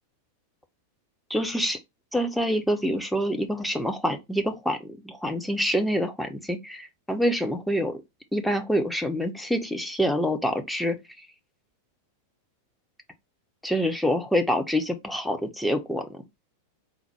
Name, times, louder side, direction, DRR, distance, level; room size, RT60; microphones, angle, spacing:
voice 1, 1.3-1.8 2.1-8.0 8.3-11.0 13.6-16.2, equal, ahead, 0.7 m, -26 dB
3.9 x 2.2 x 4.3 m
figure-of-eight pair, 90°, 0 cm